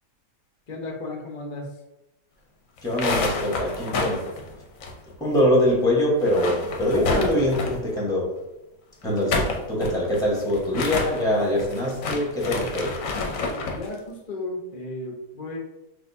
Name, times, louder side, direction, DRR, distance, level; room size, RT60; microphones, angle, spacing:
voice 1, 0.7-1.7 13.7-15.6, left 2 dB, 45° left, 0 dB, 0.5 m, -34 dB
sound 1, 2.8-5.4 5.7-5.8 6.1-7.9 9.0-13.9, left 3 dB, 65° left, 0.9 m, -29 dB
voice 2, 2.8-4.3 5.2-8.3 9.0-12.9, left 1 dB, 5° left, -4 dB, 1.0 m, -23 dB
6.1 x 2.6 x 2.6 m, 0.91 s
omnidirectional pair, 1.8 m